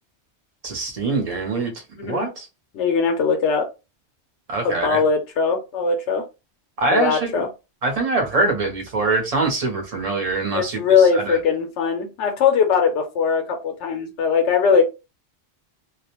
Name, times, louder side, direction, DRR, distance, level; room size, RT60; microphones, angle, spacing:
voice 1, 0.6-1.7 2.0-2.5 4.5-5.0 6.8-7.4 7.8-11.4, right 3 dB, 40° right, 2 dB, 0.8 m, -24 dB
voice 2, 2.0-2.3 2.7-3.7 4.6-6.2 6.9-7.5 10.5-14.8, left 6 dB, 90° left, 4 dB, 1.0 m, -20 dB
2.4 x 2.1 x 2.9 m, 0.27 s
omnidirectional pair, 1.2 m